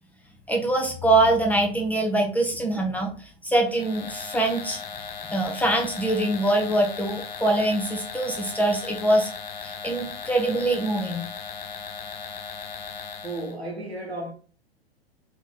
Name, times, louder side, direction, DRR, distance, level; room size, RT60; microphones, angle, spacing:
voice 1, 0.5-4.8 5.3-9.3 9.6-11.3, right 2 dB, 5° left, 0.6 m, -24 dB
sound 1, 3.7-13.6, left 6 dB, 45° left, 0.7 m, -37 dB
voice 2, 13.2-14.3, right 2 dB, 80° right, 1.5 m, -33 dB
4.0 x 2.9 x 4.1 m
figure-of-eight pair, 100°, 31 cm